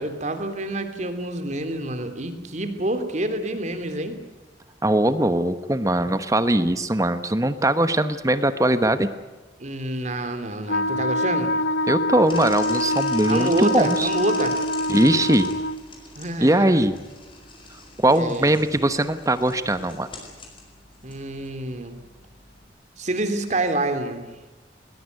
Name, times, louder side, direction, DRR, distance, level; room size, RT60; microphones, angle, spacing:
voice 1, 0.0-4.2 9.6-11.6 13.2-14.5 16.1-16.8 18.1-18.5 21.0-22.0 23.0-24.3, right 1 dB, 40° right, 8 dB, 3.1 m, -27 dB
voice 2, 4.8-9.1 11.9-14.1 14.9-15.5 16.4-17.0 18.0-20.1, right 1 dB, 20° right, 12 dB, 1.1 m, -21 dB
Wind instrument woodwind instrument, 10.7-15.8, left 1 dB, 85° left, 1.0 m, -25 dB
sound 1, 12.3-22.7, left 3 dB, 30° left, 5.4 m, -43 dB
21.0 x 20.5 x 9.4 m, 1.2 s
head